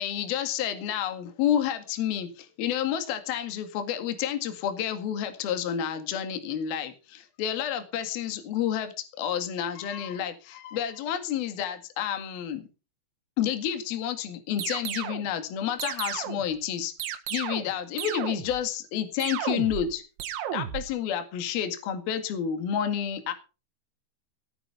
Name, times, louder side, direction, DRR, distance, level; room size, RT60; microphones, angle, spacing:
voice 1, 0.0-12.6 13.4-16.9 17.3-20.0 20.5-23.3, left 9 dB, 55° left, 8 dB, 3.4 m, -30 dB
sound 1, 14.6-15.3 15.8-16.5 17.0-17.7 18.0-18.6 19.2-19.9 20.2-20.9, right 11 dB, 70° right, 3.7 m, -33 dB
18.5 x 8.7 x 5.7 m, 0.33 s
omnidirectional pair, 5.8 m